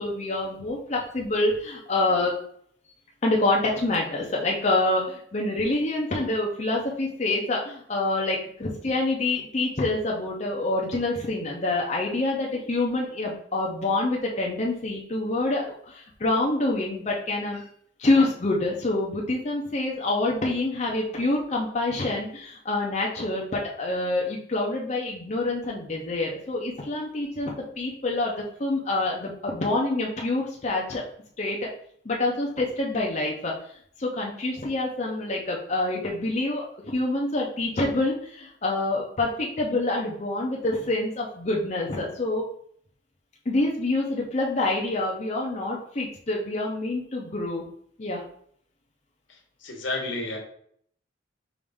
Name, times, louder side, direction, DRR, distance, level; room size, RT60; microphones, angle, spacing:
voice 1, 0.0-2.3 3.2-17.7 18.0-31.0 31.4-31.7 32.0-33.5 34.0-42.5 43.5-47.7 48.0-48.2, left 2 dB, 35° left, -2 dB, 0.6 m, -26 dB
voice 2, 49.3-50.4, left 2 dB, 80° left, 1 dB, 1.1 m, -32 dB
4.9 x 2.6 x 3.5 m, 0.63 s
head